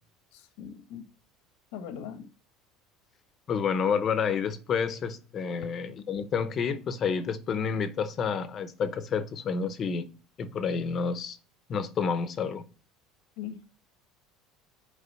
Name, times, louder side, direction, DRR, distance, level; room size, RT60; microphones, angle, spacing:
voice 1, 0.3-1.0 1.7-2.3 13.4-13.6, left 8 dB, 70° left, 1.2 m, -40 dB
voice 2, 3.5-10.1 10.4-11.4 11.7-12.6, left 6 dB, 25° left, 0.7 m, -29 dB
6.7 x 4.9 x 6.3 m
cardioid pair, 175°, 0 cm